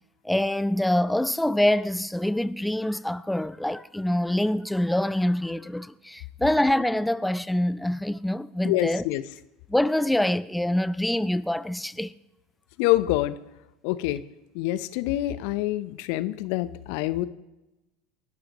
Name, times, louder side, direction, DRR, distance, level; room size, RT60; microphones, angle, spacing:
voice 1, 0.2-9.0 9.7-12.1, left 1 dB, 5° left, 0.5 m, -25 dB
voice 2, 8.6-9.2 12.8-13.4 13.8-14.2 14.5-17.3, left 15 dB, 60° left, 0.8 m, -26 dB
29.0 x 12.5 x 3.1 m
hypercardioid pair, 80°, 0 cm